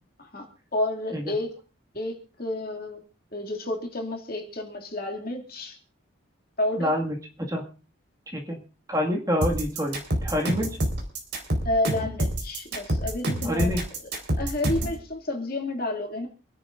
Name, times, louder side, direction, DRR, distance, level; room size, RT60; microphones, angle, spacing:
voice 1, 0.7-1.5 1.9-3.0 3.3-5.8 6.6-6.9 11.6-13.7 14.4-16.3, left 1 dB, 45° left, 1 dB, 2.4 m, -30 dB
voice 2, 6.8-7.1 7.5-7.6 8.3-8.6 8.9-10.7 13.4-13.9, equal, 15° right, 0 dB, 2.0 m, -27 dB
sound 1, 9.4-15.0, right 1 dB, 55° right, 4.1 m, -27 dB
27.0 x 11.0 x 2.6 m, 0.36 s
head